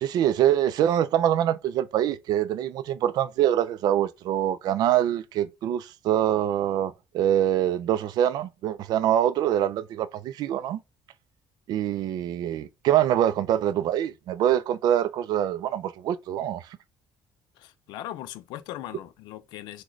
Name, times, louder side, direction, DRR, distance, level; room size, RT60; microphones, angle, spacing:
voice 1, 0.0-10.8 11.7-16.6, right 11 dB, 65° right, 0.4 m, -24 dB
voice 2, 17.6-19.8, left 13 dB, 85° left, 0.4 m, -39 dB
3.8 x 2.1 x 3.0 m
cardioid pair, 120°, 7 cm